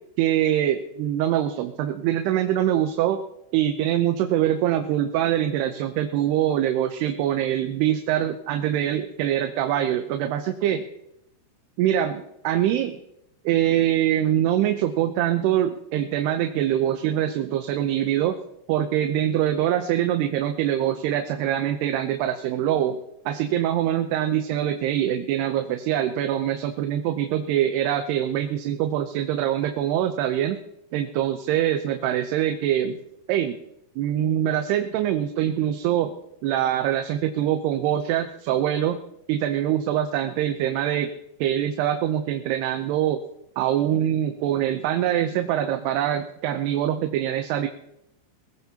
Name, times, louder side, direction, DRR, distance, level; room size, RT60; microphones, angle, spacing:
voice 1, 0.2-3.2 3.5-10.8 11.8-13.0 13.5-18.4 18.7-23.0 23.3-30.6 30.9-33.0 33.3-33.6 34.0-36.1 36.4-39.0 39.3-41.1 41.4-43.2 43.6-47.7, right 11 dB, 80° right, 6 dB, 2.7 m, -24 dB
22.0 x 19.0 x 2.9 m, 0.81 s
omnidirectional pair, 4.9 m